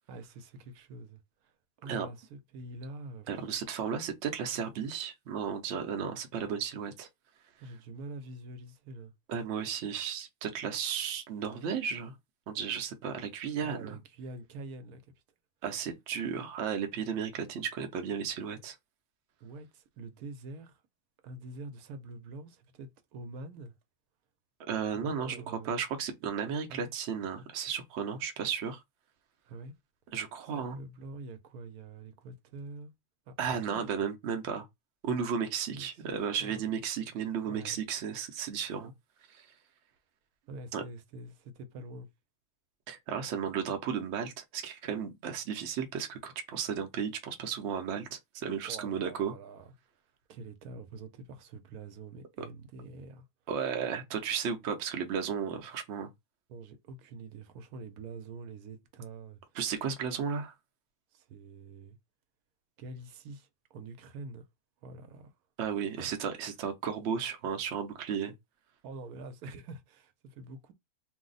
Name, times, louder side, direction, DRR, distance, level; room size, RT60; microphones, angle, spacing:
voice 1, 0.1-1.5 1.8-3.5 7.6-9.1 13.6-15.0 19.4-20.8 21.2-23.7 24.9-25.8 26.7-26.9 29.4-29.7 30.5-32.9 33.3-34.1 35.7-36.0 36.4-36.7 37.4-37.8 40.4-42.1 48.6-49.7 50.3-53.2 56.5-59.4 61.1-62.0 62.8-64.4 64.8-65.3 66.0-66.1 68.8-70.7, right 3 dB, 85° right, 1.1 m, -46 dB
voice 2, 3.3-7.1 9.3-12.1 12.5-14.0 15.6-18.8 24.7-28.8 30.1-30.8 33.4-34.7 35.0-38.9 39.3-39.5 40.7-40.8 42.9-49.3 52.4-52.5 53.5-56.1 59.5-60.5 65.6-68.3, right 7 dB, 60° right, 0.8 m, -34 dB
2.6 x 2.0 x 3.9 m
omnidirectional pair, 1.5 m